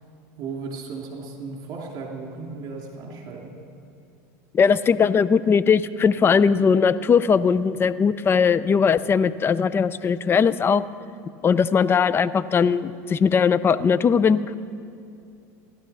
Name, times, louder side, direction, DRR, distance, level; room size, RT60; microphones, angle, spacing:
voice 1, 0.4-3.5, right 4 dB, 50° right, 0 dB, 2.9 m, -35 dB
voice 2, 4.5-10.8 11.4-14.5, left 6 dB, 25° left, 15 dB, 0.5 m, -19 dB
17.0 x 12.0 x 5.7 m, 2.5 s
supercardioid pair, 110°, 9 cm